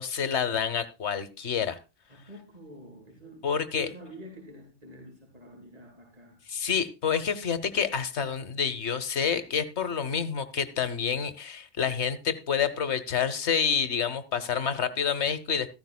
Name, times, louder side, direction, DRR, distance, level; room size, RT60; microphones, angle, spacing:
voice 1, 0.0-1.8 3.4-3.9 6.5-15.7, left 7 dB, 75° left, 12 dB, 1.4 m, -28 dB
voice 2, 2.1-6.4, right 1 dB, 35° right, -2 dB, 4.2 m, -47 dB
14.5 x 14.0 x 2.2 m, 0.29 s
omnidirectional pair, 1.2 m